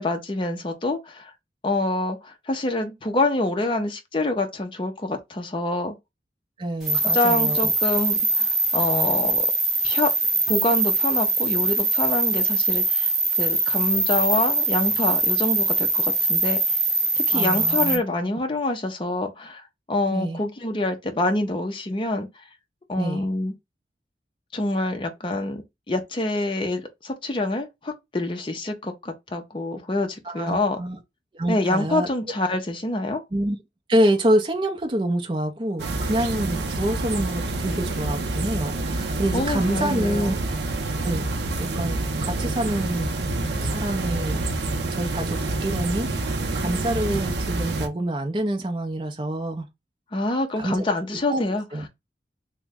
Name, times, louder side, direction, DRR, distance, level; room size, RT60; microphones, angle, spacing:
voice 1, 0.0-1.3 1.6-6.0 7.0-9.5 9.8-10.1 10.5-16.8 17.1-22.4 22.9-23.5 24.5-30.8 31.5-33.2 39.3-40.4 50.1-51.9, left 2 dB, 30° left, 0.5 m, -26 dB
voice 2, 6.6-7.7 17.3-18.0 20.1-20.4 23.0-23.2 30.3-31.0 31.3-32.1 33.3-33.6 33.9-40.4 41.0-41.3 41.6-43.1 43.6-44.4 44.9-49.7 50.6-50.8 51.3-51.4 51.7-51.9, right 1 dB, 30° right, 0.5 m, -26 dB
sound 1, 6.8-18.0, right 3 dB, ahead, 1.1 m, -22 dB
sound 2, 35.8-47.9, right 2 dB, 75° right, 0.5 m, -27 dB
3.0 x 2.1 x 3.4 m
head